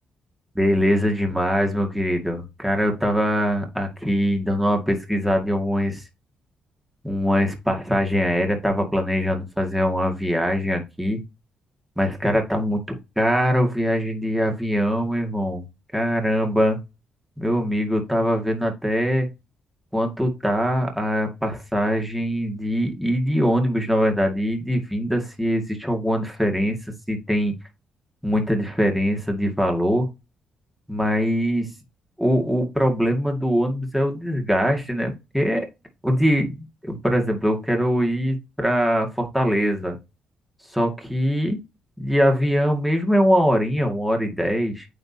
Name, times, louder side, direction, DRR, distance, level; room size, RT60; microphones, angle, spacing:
voice 1, 0.6-6.0 7.0-11.2 12.0-12.8 13.2-15.6 15.9-16.8 17.4-19.3 19.9-26.8 27.1-27.5 28.2-30.1 30.9-31.7 32.2-35.7 36.0-40.0 40.7-41.6 42.0-44.9, equal, 5° right, 2 dB, 2.1 m, -22 dB
9.0 x 3.7 x 2.9 m, 0.25 s
cardioid pair, 90°, 2 cm